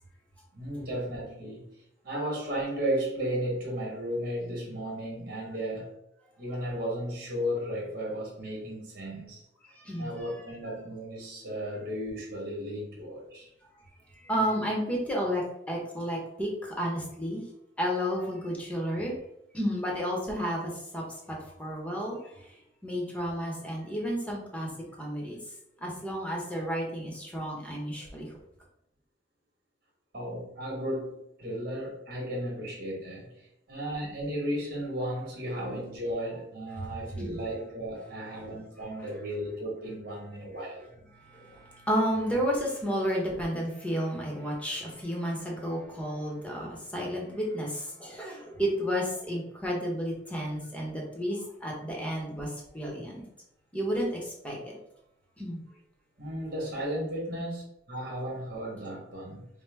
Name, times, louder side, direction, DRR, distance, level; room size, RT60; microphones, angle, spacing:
voice 1, 0.5-1.6 2.0-5.9 6.4-9.4 10.0-13.5 30.1-40.9 56.2-59.5, equal, 60° right, -2 dB, 1.4 m, -34 dB
voice 2, 14.2-17.4 17.8-19.1 19.5-22.3 22.8-24.7 25.0-25.4 25.8-28.3 37.2-37.4 41.3-53.2 53.7-54.7 55.4-55.6, equal, 10° left, -1 dB, 1.0 m, -32 dB
4.8 x 2.1 x 3.3 m, 0.77 s
head